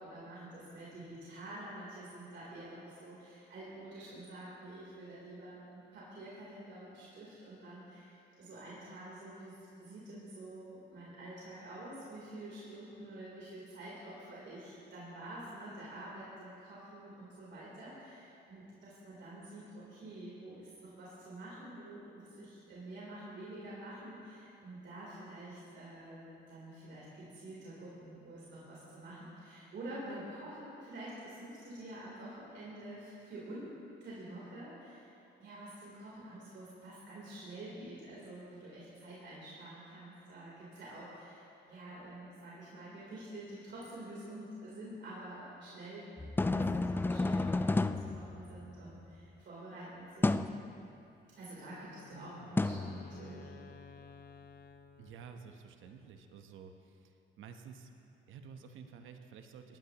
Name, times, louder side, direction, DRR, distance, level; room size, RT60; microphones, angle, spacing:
voice 1, 0.0-33.7 34.0-35.1 35.4-46.1 46.5-50.5 51.4-53.5, right 1 dB, 65° right, -7 dB, 3.5 m, -48 dB
sound 1, 46.2-49.0 50.2-50.6 52.6-53.6, left 2 dB, 10° left, 0.3 m, -32 dB
Wind instrument woodwind instrument, 51.6-55.7, left 7 dB, 50° left, 0.7 m, -56 dB
voice 2, 52.1-52.5 55.0-57.9 58.3-59.8, right 6 dB, 80° right, 6 dB, 1.0 m, -52 dB
18.5 x 12.5 x 3.0 m, 2.8 s
cardioid pair, 90°, 20 cm